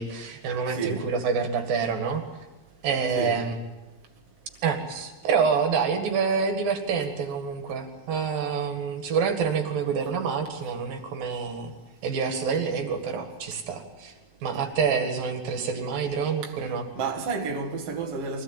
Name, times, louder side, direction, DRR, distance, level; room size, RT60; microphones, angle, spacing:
voice 1, 0.0-2.2 2.8-3.6 4.6-11.7 12.0-14.1 14.4-16.9, right 6 dB, 75° right, 3.7 m, -27 dB
voice 2, 0.7-1.1 3.2-3.4 16.4-16.5 17.0-18.4, right 4 dB, 45° right, 3.0 m, -30 dB
24.0 x 17.0 x 9.1 m
omnidirectional pair, 4.1 m